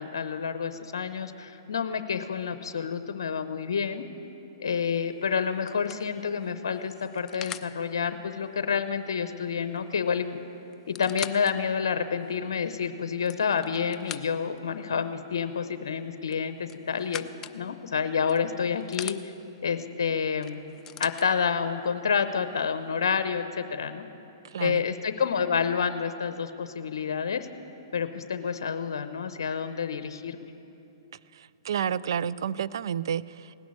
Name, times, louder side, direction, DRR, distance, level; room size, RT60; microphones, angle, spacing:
voice 1, 0.0-4.0 4.6-10.4 10.9-19.3 19.6-20.6 21.0-24.0 24.6-27.5 27.9-30.5, left 6 dB, 80° left, 10 dB, 0.7 m, -29 dB
sound 1, 4.8-5.1 5.7-7.7 9.8-9.9 10.1-10.2 10.7-11.5 12.1-12.2 13.0-14.6 16.3-17.6 18.3-19.2 20.4-21.3 22.2-22.3, left 9 dB, 20° left, 0.4 m, -41 dB
voice 2, 24.5-24.8 31.3-33.6, right 8 dB, 75° right, 18 dB, 0.3 m, -30 dB
17.5 x 6.2 x 9.8 m, 2.8 s
hypercardioid pair, 130°, 2 cm